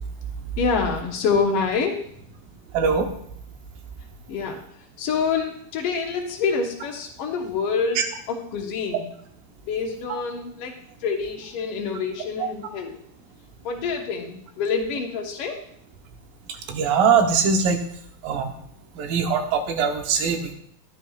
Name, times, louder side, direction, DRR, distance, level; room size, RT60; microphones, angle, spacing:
voice 1, 0.6-2.0 4.3-4.6 5.0-9.1 9.7-10.7 11.0-13.0 13.6-15.6, left 5 dB, 75° left, 1 dB, 1.3 m, -26 dB
voice 2, 16.7-17.8 18.2-18.5 19.0-20.5, right 6 dB, 75° right, 4 dB, 2.6 m, -21 dB
12.0 x 10.5 x 2.4 m, 0.69 s
omnidirectional pair, 4.3 m